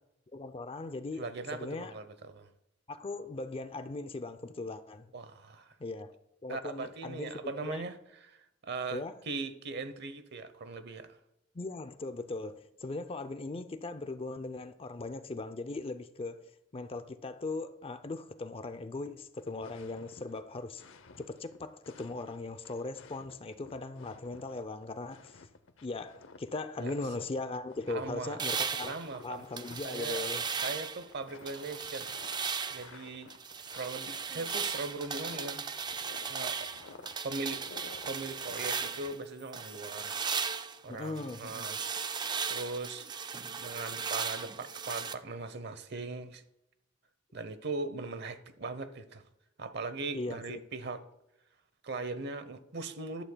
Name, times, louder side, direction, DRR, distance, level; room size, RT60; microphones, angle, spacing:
voice 1, 0.3-1.9 2.9-5.1 5.8-6.1 6.4-7.8 8.9-9.2 11.5-16.5 16.7-20.8 21.2-25.5 25.8-29.0 29.2-30.4 40.9-41.6 50.1-50.6, left 3 dB, 30° left, 0.5 m, -39 dB
voice 2, 1.2-2.5 5.1-5.8 6.5-11.2 26.8-26.9 27.9-28.4 28.9-29.4 29.8-30.2 30.6-32.1 32.7-33.3 33.7-35.6 36.3-36.7 37.2-37.6 38.1-40.2 40.8-41.8 42.5-43.1 43.6-46.4 47.3-49.2 49.6-51.0 51.8-53.2, right 3 dB, 60° right, 0.9 m, -39 dB
sound 1, 19.4-39.1, left 4 dB, 85° left, 0.7 m, -54 dB
sound 2, 28.4-31.1 31.5-32.9 33.3-39.2 39.5-45.1, right 6 dB, 20° right, 0.4 m, -36 dB
14.5 x 11.5 x 2.3 m
head